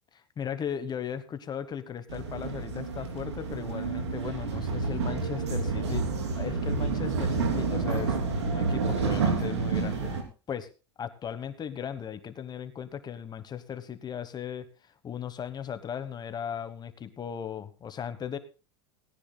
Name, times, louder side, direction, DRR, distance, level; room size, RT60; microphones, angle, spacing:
voice 1, 0.4-10.1 10.5-10.7 11.0-14.7 15.0-18.4, left 8 dB, 30° left, 11 dB, 1.3 m, -37 dB
sound 1, 2.1-10.2, right 4 dB, 90° right, 3.2 m, -29 dB
18.5 x 17.0 x 2.3 m, 0.34 s
hypercardioid pair, 95°, 14 cm